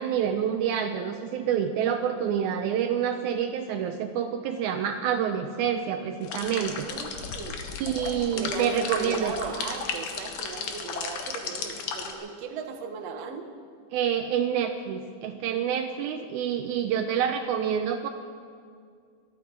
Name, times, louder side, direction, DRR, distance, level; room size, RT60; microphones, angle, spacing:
voice 1, 0.0-6.9 7.8-9.3 13.9-18.1, right 8 dB, 85° right, 5 dB, 1.7 m, -27 dB
sound 1, 6.2-12.1, left 5 dB, 65° left, 2.5 m, -35 dB
voice 2, 6.7-7.6 8.3-13.5, right 5 dB, 65° right, 5 dB, 1.7 m, -37 dB
21.5 x 13.0 x 4.7 m, 2.2 s
omnidirectional pair, 4.3 m